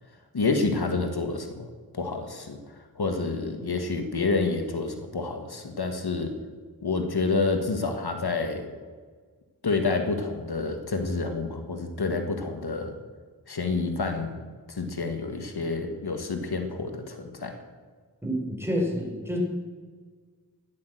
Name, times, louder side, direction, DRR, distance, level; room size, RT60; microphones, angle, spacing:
voice 1, 0.3-2.6 3.0-6.3 6.8-8.7 9.6-13.0 13.5-14.3 14.7-17.5, left 3 dB, 80° left, 6 dB, 1.6 m, -28 dB
voice 2, 18.2-19.4, equal, 5° right, -1 dB, 4.8 m, -28 dB
12.5 x 11.0 x 7.8 m, 1.5 s
wide cardioid pair, 50°, 38 cm